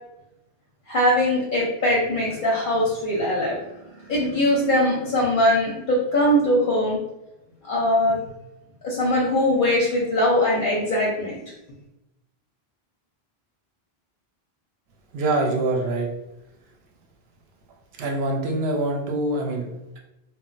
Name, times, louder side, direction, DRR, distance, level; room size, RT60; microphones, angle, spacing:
voice 1, 0.9-7.0 7.6-8.2 8.8-11.4, left 1 dB, 55° left, -4 dB, 0.7 m, -21 dB
voice 2, 15.1-16.1 18.0-20.0, right 2 dB, 80° right, 1 dB, 0.8 m, -25 dB
2.1 x 2.1 x 3.8 m, 0.92 s
omnidirectional pair, 1.0 m